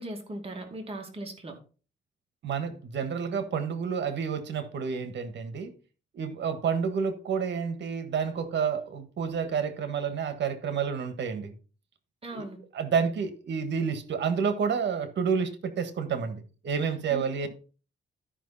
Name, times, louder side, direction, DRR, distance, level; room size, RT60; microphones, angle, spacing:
voice 1, 0.0-1.6 12.2-12.6 17.1-17.5, right 1 dB, 30° right, 2.4 m, -38 dB
voice 2, 2.4-5.7 6.1-11.5 12.3-12.5 12.7-17.5, right 6 dB, 65° right, 1.6 m, -29 dB
12.5 x 5.8 x 4.1 m
cardioid pair, 120°, 19 cm